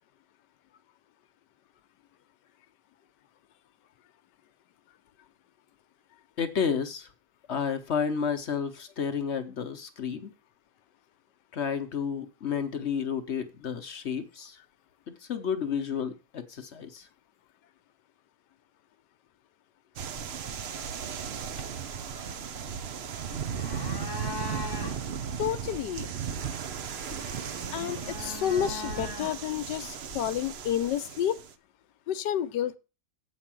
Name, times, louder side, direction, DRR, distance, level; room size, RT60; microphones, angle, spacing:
voice 1, 6.4-7.1 7.5-10.3 11.5-14.6 15.1-17.1, left 7 dB, 50° left, 0.9 m, -31 dB
sound 1, 20.0-31.5, right 7 dB, 60° right, 0.6 m, -36 dB
sound 2, 20.1-31.0, left 2 dB, 20° left, 0.8 m, -43 dB
voice 2, 25.4-26.1 27.7-31.4 32.1-32.8, left 10 dB, 75° left, 1.3 m, -30 dB
8.1 x 5.3 x 7.4 m
omnidirectional pair, 1.9 m